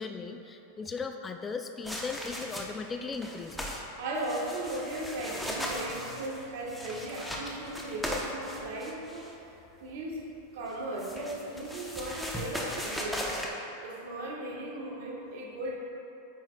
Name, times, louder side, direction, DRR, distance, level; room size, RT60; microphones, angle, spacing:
voice 1, 0.0-3.8, left 4 dB, 20° left, 6 dB, 0.3 m, -37 dB
sound 1, 1.8-2.8 3.1-3.8 4.2-9.3 10.7-13.5, equal, 5° left, 0.7 m, -38 dB
voice 2, 4.0-9.3 9.8-10.2 10.5-13.4 13.8-15.8, right 1 dB, 65° right, -2 dB, 1.2 m, -37 dB
8.6 x 5.6 x 2.2 m, 3.0 s
hypercardioid pair, 110°, 0 cm